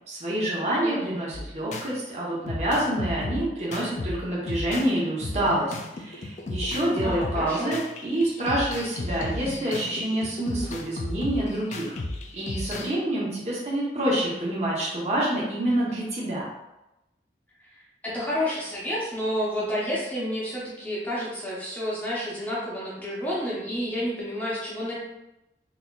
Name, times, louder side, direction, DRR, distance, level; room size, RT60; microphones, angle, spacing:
voice 1, 0.1-12.0 12.3-16.5, right 1 dB, 40° right, -6 dB, 0.9 m, -27 dB
voice 2, 0.8-1.2 7.0-7.8 17.6-25.0, equal, 10° left, -7 dB, 0.9 m, -30 dB
sound 1, 1.3-1.9 2.5-4.9 5.2-12.9, left 2 dB, 40° left, 0.3 m, -34 dB
4.0 x 2.9 x 2.3 m, 0.92 s
head